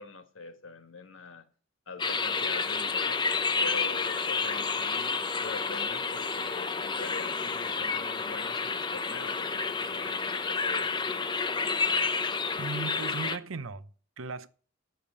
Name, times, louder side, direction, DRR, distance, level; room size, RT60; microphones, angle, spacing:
voice 1, 0.0-1.5 1.9-3.2 3.6-11.4, left 3 dB, 70° left, 1.4 m, -43 dB
sound 1, 2.0-13.4, left 4 dB, 20° left, 0.6 m, -30 dB
voice 2, 12.6-14.5, right 4 dB, 85° right, 0.7 m, -37 dB
8.9 x 6.9 x 7.2 m
head